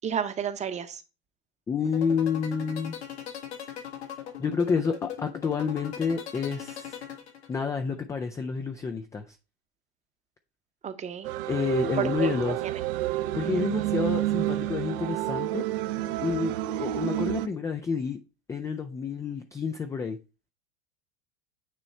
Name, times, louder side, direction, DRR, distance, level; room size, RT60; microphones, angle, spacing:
voice 1, 0.0-1.0 10.8-11.3 12.0-12.3 12.6-12.7 13.6-13.9, right 8 dB, 20° right, 10 dB, 0.8 m, -31 dB
voice 2, 1.7-2.9 4.4-7.0 7.5-9.4 11.5-12.6 13.3-15.6 16.2-18.2 18.5-20.2, left 5 dB, 10° left, 6 dB, 0.3 m, -29 dB
sound 1, 1.8-7.8, left 10 dB, 80° left, 1.7 m, -38 dB
sound 2, 11.2-17.5, right 14 dB, 55° right, 0.6 m, -29 dB
9.2 x 3.1 x 4.2 m, 0.30 s
hypercardioid pair, 105°, 33 cm